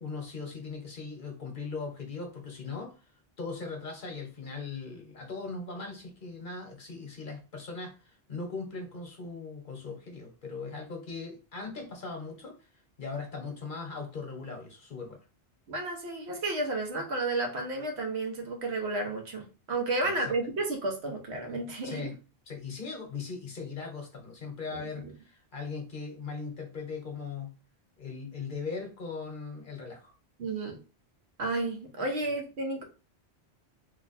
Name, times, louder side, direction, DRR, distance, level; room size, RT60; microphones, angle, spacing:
voice 1, 0.0-3.0 3.4-12.5 13.0-15.2 20.0-20.1 21.8-22.2 22.5-27.5 28.0-30.1, left 4 dB, 50° left, 2 dB, 1.0 m, -39 dB
voice 2, 15.7-22.1 24.7-25.1 30.4-30.8 31.4-32.8, right 2 dB, 80° right, 2 dB, 1.2 m, -32 dB
3.1 x 2.2 x 4.0 m, 0.34 s
omnidirectional pair, 1.1 m